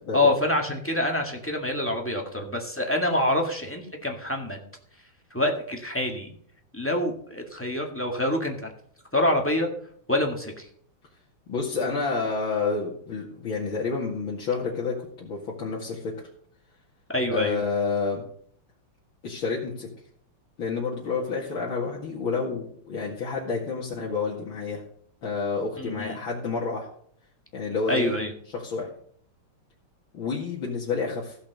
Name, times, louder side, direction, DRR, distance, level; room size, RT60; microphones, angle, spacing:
voice 1, 0.0-4.6 5.3-6.3 6.7-8.7 9.1-9.7 10.1-10.7 17.1-17.6 25.8-26.2 27.9-28.3, left 1 dB, 5° left, 1 dB, 1.8 m, -26 dB
voice 2, 11.5-16.1 17.3-18.3 19.2-19.9 20.6-24.8 25.2-26.9 27.5-28.2 28.5-28.9 30.1-31.4, left 4 dB, 70° left, -5 dB, 2.8 m, -29 dB
15.5 x 5.7 x 6.8 m, 0.62 s
omnidirectional pair, 2.3 m